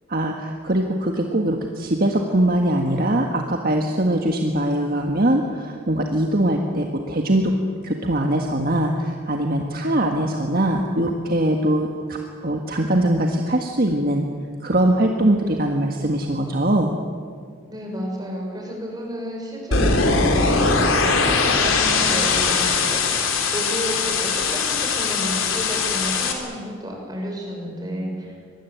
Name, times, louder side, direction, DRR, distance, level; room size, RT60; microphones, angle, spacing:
voice 1, 0.1-7.5 7.8-14.3 14.6-16.9, right 1 dB, 45° right, 2 dB, 1.7 m, -22 dB
voice 2, 17.7-20.3 21.1-28.3, equal, 20° right, 0 dB, 6.3 m, -31 dB
sound 1, 19.7-26.3, left 4 dB, 70° left, 3.6 m, -20 dB
24.5 x 20.0 x 9.4 m, 2.1 s
head